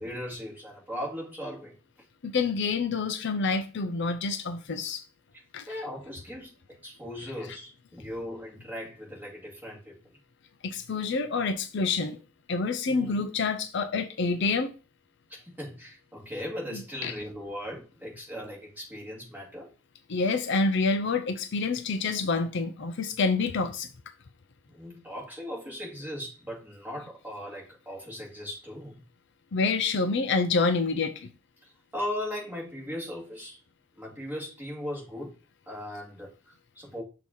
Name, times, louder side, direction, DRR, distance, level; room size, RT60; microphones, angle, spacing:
voice 1, 0.0-1.8 5.3-10.0 12.9-13.3 15.3-19.7 24.7-29.0 31.6-33.6 34.0-35.3 35.7-37.0, left 1 dB, 10° right, 2.3 m, -38 dB
voice 2, 2.2-5.0 5.5-5.7 10.6-12.2 12.5-14.7 16.7-17.1 20.1-23.9 29.5-31.3, left 4 dB, 55° left, 0.6 m, -27 dB
6.3 x 2.9 x 5.3 m
head